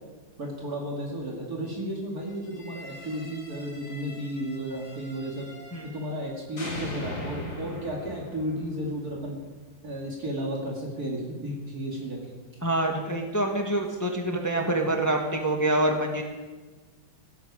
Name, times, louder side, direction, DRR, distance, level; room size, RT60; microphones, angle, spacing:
voice 1, 0.4-5.5 5.9-9.4 9.8-12.3, equal, 50° right, -2 dB, 2.6 m, -33 dB
sound 1, 2.4-6.3 6.6-9.6, left 1 dB, 70° left, 3.5 m, -41 dB
voice 2, 12.6-16.2, right 1 dB, 10° left, 2 dB, 1.1 m, -26 dB
16.0 x 12.5 x 4.8 m, 1.3 s
omnidirectional pair, 2.2 m